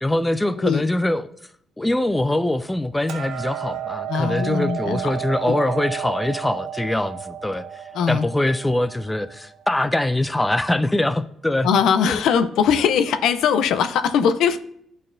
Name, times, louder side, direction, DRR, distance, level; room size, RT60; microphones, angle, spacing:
voice 1, 0.0-1.3 1.8-11.7 12.1-12.2, left 1 dB, 10° left, 12 dB, 0.4 m, -23 dB
Hammer, 3.1-9.3, right 10 dB, 90° right, 0.6 m, -32 dB
voice 2, 4.1-5.1 5.5-5.6 7.9-8.2 11.6-14.6, left 7 dB, 80° left, 10 dB, 0.5 m, -20 dB
10.5 x 4.2 x 2.5 m, 0.70 s
cardioid pair, 90°, 0 cm